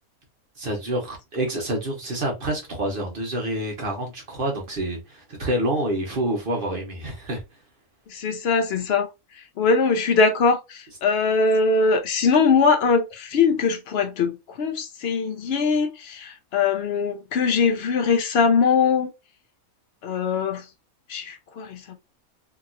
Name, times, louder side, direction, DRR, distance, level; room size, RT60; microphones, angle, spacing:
voice 1, 0.6-7.4, right 1 dB, 45° right, 0.8 m, -27 dB
voice 2, 8.1-9.1 9.6-14.3 14.6-19.1 20.0-20.6 21.1-21.9, left 5 dB, 65° left, 0.6 m, -21 dB
2.8 x 2.8 x 2.5 m
omnidirectional pair, 1.5 m